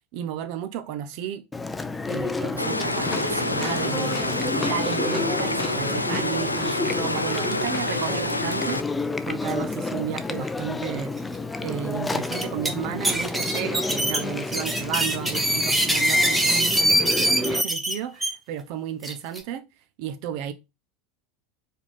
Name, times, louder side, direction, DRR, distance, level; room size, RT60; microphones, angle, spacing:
voice 1, 0.1-1.5 2.0-8.8 9.3-11.1 11.6-19.6 20.0-20.5, right 10 dB, 50° right, 0.8 m, -33 dB
Chewing mastication, 1.5-17.6, left 3 dB, 10° left, 0.5 m, -30 dB
sound 1, 2.6-8.8, left 2 dB, 85° left, 0.4 m, -28 dB
sound 2, 8.3-8.5 8.8-8.9 9.5-9.7 10.6-10.7 11.2-11.3 12.1-12.7 13.0-18.3 19.0-19.4, right 1 dB, 10° right, 1.2 m, -23 dB
4.9 x 3.7 x 5.3 m
figure-of-eight pair, 80°, 0 cm